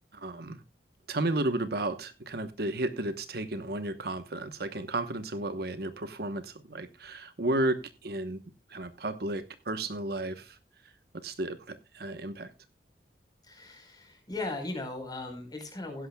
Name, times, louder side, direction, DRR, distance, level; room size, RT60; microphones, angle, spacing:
voice 1, 0.1-0.6 1.1-8.4 8.7-10.6 11.2-12.5, right 2 dB, 60° right, 1.1 m, -33 dB
voice 2, 13.4-16.1, left 2 dB, 25° left, 4.5 m, -38 dB
16.0 x 11.0 x 2.3 m
head